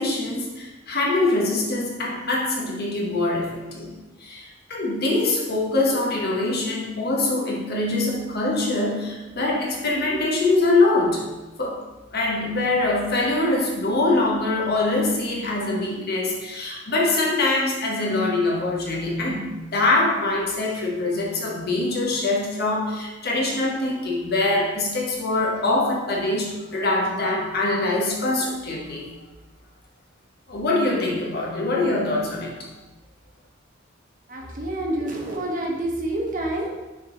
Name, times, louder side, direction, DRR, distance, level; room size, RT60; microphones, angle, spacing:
voice 1, 0.0-11.3 11.6-11.8 12.1-29.1 30.5-32.7, left 2 dB, 55° left, -3 dB, 1.3 m, -23 dB
voice 2, 34.3-36.7, right 1 dB, 45° right, 0 dB, 0.9 m, -27 dB
6.2 x 3.9 x 3.8 m, 1.1 s
head